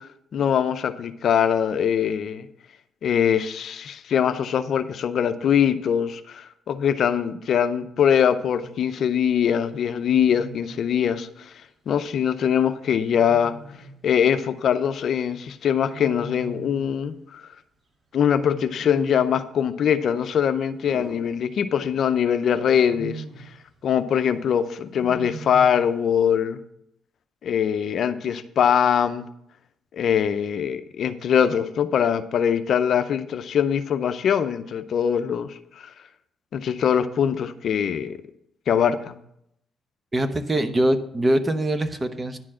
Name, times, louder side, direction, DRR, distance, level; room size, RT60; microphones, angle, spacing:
voice 1, 0.0-2.5 3.0-11.5 11.9-13.5 14.0-17.5 18.1-23.2 23.8-26.6 27.4-29.2 29.9-35.9 36.5-38.2 38.7-39.2, left 8 dB, 65° left, 10 dB, 0.6 m, -22 dB
Wild animals, 8.5-8.8 10.0-10.8 13.1-14.0 15.8-16.9 18.3-19.3 20.8-22.0 22.7-23.6 24.9-25.9, right 3 dB, 40° right, 4.4 m, -40 dB
voice 2, 40.1-42.4, right 1 dB, 25° right, 9 dB, 0.9 m, -23 dB
10.5 x 4.6 x 7.4 m, 0.75 s
cardioid pair, 90°, 0 cm